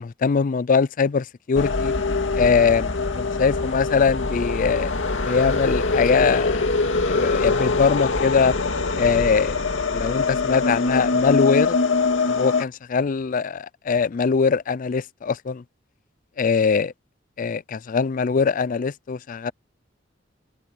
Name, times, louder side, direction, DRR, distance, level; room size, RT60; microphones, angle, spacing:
voice 1, 0.0-1.9 2.4-4.9 5.2-6.7 7.0-8.5 8.9-9.6 9.9-11.8 12.3-15.6 16.4-16.9 17.4-19.5, left 5 dB, 45° left, 0.4 m, -22 dB
sound 1, 1.5-12.6, left 3 dB, 90° left, 2.1 m, -23 dB
head